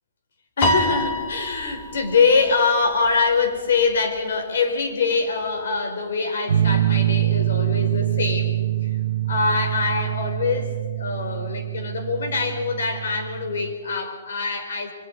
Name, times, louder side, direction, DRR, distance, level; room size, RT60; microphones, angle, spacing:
voice 1, 0.6-8.6 8.8-8.9 9.3-14.9, left 4 dB, 70° left, 4 dB, 4.8 m, -23 dB
Piano, 0.6-3.1, left 1 dB, 20° left, 1.8 m, -26 dB
sound 1, 6.5-13.7, right 13 dB, 80° right, 1.2 m, -24 dB
27.0 x 24.0 x 4.8 m, 1.5 s
hypercardioid pair, 175°, 0 cm